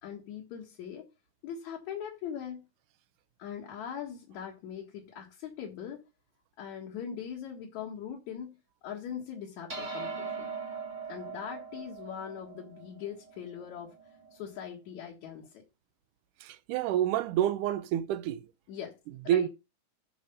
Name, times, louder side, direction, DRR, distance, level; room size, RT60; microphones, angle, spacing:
voice 1, 0.0-1.1 1.4-2.7 3.4-6.0 6.6-10.5 11.1-14.0 14.3-15.6 18.7-19.0 19.2-19.5, left 8 dB, 60° left, 2.7 m, -41 dB
sound 1, 9.7-14.4, right 4 dB, 40° right, 1.1 m, -41 dB
voice 2, 16.4-18.5 19.3-19.5, right 11 dB, 75° right, 2.1 m, -28 dB
10.5 x 4.9 x 5.3 m
omnidirectional pair, 3.9 m